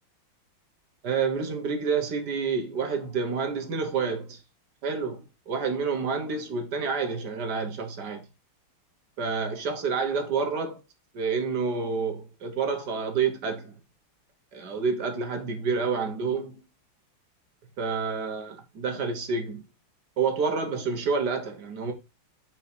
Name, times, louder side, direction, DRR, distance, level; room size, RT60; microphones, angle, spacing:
voice 1, 1.0-4.4 4.8-8.2 9.2-10.8 11.1-13.7 14.5-16.6 17.8-19.6 20.2-21.9, right 5 dB, 55° right, 1.6 m, -28 dB
5.6 x 4.9 x 4.4 m
omnidirectional pair, 2.4 m